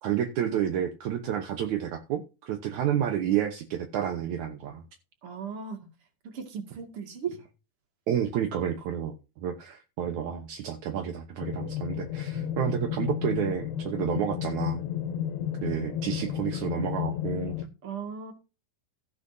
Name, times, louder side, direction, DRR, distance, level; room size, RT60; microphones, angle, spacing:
voice 1, 0.0-4.8 8.1-14.8 15.6-17.6, right 9 dB, 70° right, 1.9 m, -30 dB
voice 2, 5.2-5.9 6.3-7.4 17.8-18.3, right 6 dB, 40° right, 2.5 m, -36 dB
sound 1, 11.4-17.7, left 9 dB, 75° left, 2.7 m, -32 dB
15.0 x 10.0 x 2.7 m
omnidirectional pair, 4.7 m